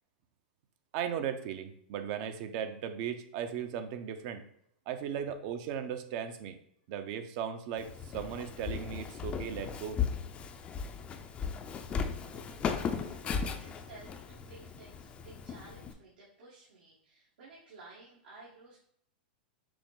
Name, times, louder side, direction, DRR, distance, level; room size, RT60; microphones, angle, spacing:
voice 1, 0.9-4.4 4.9-6.6 6.9-10.0, right 8 dB, 45° right, 9 dB, 0.6 m, -37 dB
Walk footsteps, 7.8-15.9, left 6 dB, 20° left, 0.4 m, -37 dB
voice 2, 12.2-18.8, right 3 dB, 80° right, -6 dB, 1.5 m, -54 dB
5.9 x 2.0 x 3.8 m, 0.72 s
hypercardioid pair, 130°, 5 cm